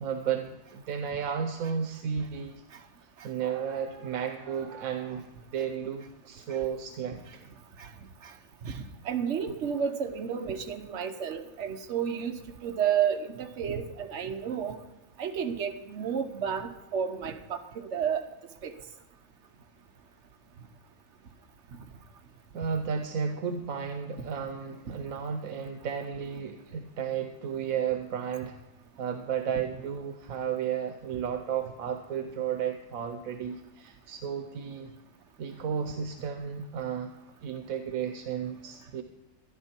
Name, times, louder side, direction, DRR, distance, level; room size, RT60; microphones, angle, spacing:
voice 1, 0.0-2.6 3.2-5.3 5.5-7.5 22.5-28.6 29.0-34.9 35.4-37.1 37.4-39.0, right 7 dB, 90° right, 6 dB, 1.2 m, -33 dB
voice 2, 8.6-14.8 15.2-17.6 17.9-18.2 18.6-18.7, right 8 dB, 60° right, 6 dB, 1.2 m, -31 dB
13.0 x 11.0 x 4.4 m, 1.0 s
omnidirectional pair, 1.4 m